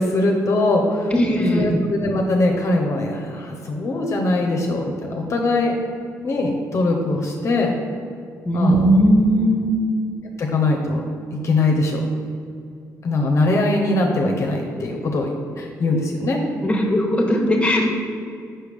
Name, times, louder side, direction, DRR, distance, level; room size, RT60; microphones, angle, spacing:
voice 1, 0.0-1.1 1.5-5.7 6.2-7.7 8.5-8.9 10.4-11.0 11.3-12.0 13.0-16.4, left 2 dB, 50° left, 1 dB, 0.7 m, -21 dB
voice 2, 1.1-1.7 8.4-9.8 16.6-17.9, equal, 15° left, 1 dB, 1.1 m, -18 dB
5.7 x 4.9 x 3.4 m, 2.4 s
cardioid pair, 80°, 6 cm